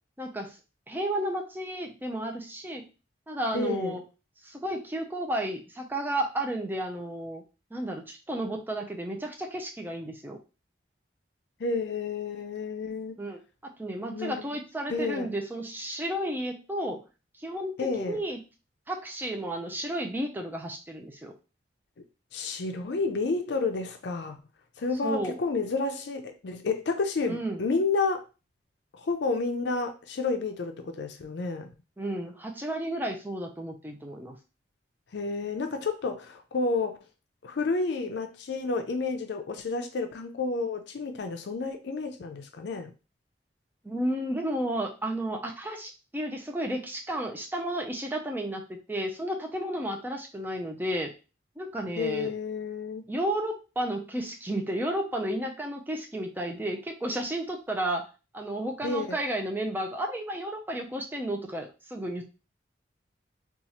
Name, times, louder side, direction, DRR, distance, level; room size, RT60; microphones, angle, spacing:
voice 1, 0.2-0.5 0.9-2.9 3.3-4.0 4.4-7.4 7.7-10.4 13.2-17.0 17.4-18.4 18.9-21.3 25.0-25.4 27.3-27.6 32.0-34.4 43.8-51.1 51.6-52.3 53.1-58.1 58.3-62.2, right 1 dB, 10° right, 0.4 m, -32 dB
voice 2, 3.5-3.9 11.6-13.2 14.1-14.4 14.9-15.3 17.8-18.2 22.3-24.4 24.8-28.2 28.9-31.7 35.1-37.0 37.4-42.9 52.0-53.0 58.8-59.2, left 3 dB, 70° left, 0.4 m, -30 dB
2.9 x 2.4 x 4.1 m
head